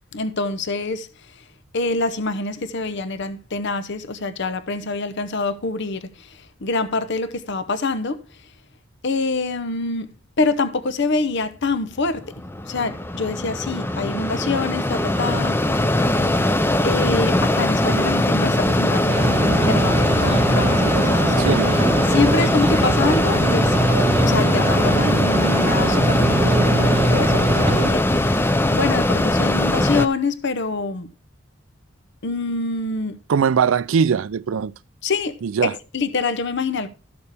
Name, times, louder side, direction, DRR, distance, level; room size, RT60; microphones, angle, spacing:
voice 1, 0.1-1.4 1.7-8.5 9.0-12.3 12.7-15.8 16.8-21.6 22.1-23.8 24.2-31.1 32.2-33.2 35.0-36.9, left 3 dB, 60° left, 0.8 m, -26 dB
Mechanisms, 12.1-30.1, left 1 dB, 10° left, 0.6 m, -20 dB
sound 1, 19.1-27.9, right 3 dB, 35° right, 0.5 m, -23 dB
voice 2, 21.4-21.8 33.3-34.7 35.4-35.7, right 6 dB, 85° right, 0.4 m, -20 dB
13.0 x 7.0 x 3.4 m
head